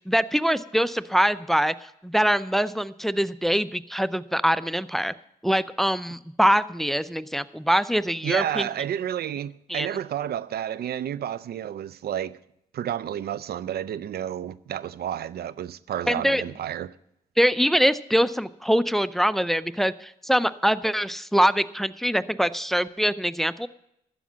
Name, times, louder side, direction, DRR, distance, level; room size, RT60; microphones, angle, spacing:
voice 1, 0.0-5.1 5.4-8.7 9.7-9.9 16.1-16.4 17.4-23.7, equal, ahead, 0.6 m, -23 dB
voice 2, 8.2-12.4 12.7-16.9, right 10 dB, 65° right, 0.5 m, -31 dB
12.0 x 8.4 x 7.3 m
hypercardioid pair, 40°, 17 cm